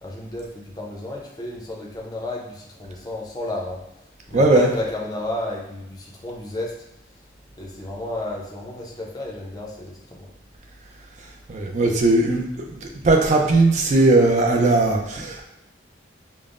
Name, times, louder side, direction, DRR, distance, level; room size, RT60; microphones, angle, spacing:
voice 1, 0.0-3.8 4.3-6.8 7.6-10.3, left 2 dB, 20° left, -2 dB, 0.5 m, -32 dB
voice 2, 4.3-4.7 11.5-12.4 12.7-15.4, right 2 dB, 40° right, 2 dB, 0.4 m, -18 dB
5.2 x 2.0 x 2.4 m, 0.85 s
head